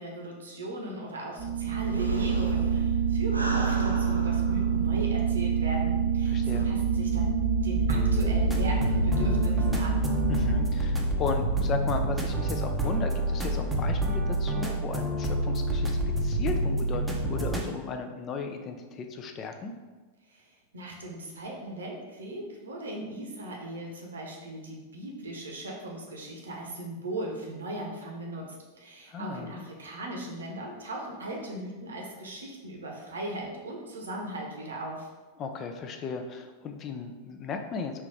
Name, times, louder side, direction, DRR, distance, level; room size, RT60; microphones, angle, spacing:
voice 1, 0.0-6.4 6.6-7.3 7.6-10.0 20.3-35.1, right 1 dB, 70° right, 0 dB, 0.9 m, -38 dB
sound 1, 1.4-10.6, right 5 dB, 85° left, 1.5 m, -26 dB
sound 2, 1.7-5.3 5.6-5.7 6.2-6.6, right 1 dB, 85° right, 0.5 m, -35 dB
voice 2, 6.3-6.7 10.3-19.7 29.1-29.5 35.4-38.0, left 5 dB, 30° left, 6 dB, 0.4 m, -35 dB
sound 3, 7.9-17.7, right 1 dB, 5° right, 0.7 m, -28 dB
4.6 x 2.9 x 3.4 m, 1.3 s
figure-of-eight pair, 90°, 0 cm